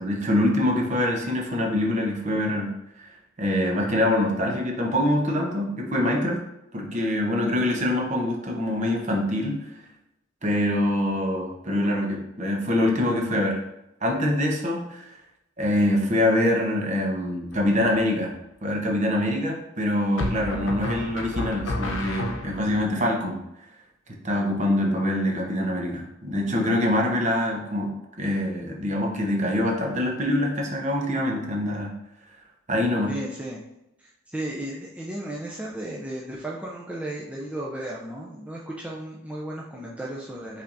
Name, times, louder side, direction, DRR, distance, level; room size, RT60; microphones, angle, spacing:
voice 1, 0.0-2.7 3.0-3.1 3.4-6.4 6.7-9.7 10.4-13.6 14.0-15.1 15.6-18.3 18.6-23.4 24.2-27.9 28.2-31.9 32.7-33.1, left 1 dB, 40° right, 0 dB, 0.9 m, -24 dB
sound 1, 17.5-18.1 20.2-22.8, left 1 dB, 85° left, 0.7 m, -31 dB
voice 2, 33.1-33.6 34.0-40.6, right 1 dB, 5° right, -4 dB, 0.4 m, -34 dB
5.6 x 3.4 x 2.6 m, 0.87 s
head